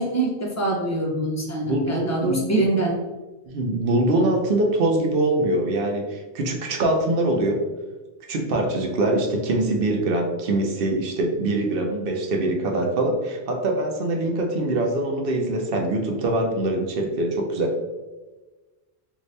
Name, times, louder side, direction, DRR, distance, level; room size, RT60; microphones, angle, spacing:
voice 1, 0.0-3.0, right 2 dB, 20° left, -2 dB, 0.5 m, -24 dB
voice 2, 1.7-2.4 3.5-7.6 8.3-17.7, right 2 dB, 60° right, 2 dB, 0.7 m, -23 dB
2.7 x 2.5 x 3.2 m, 1.2 s
omnidirectional pair, 1.2 m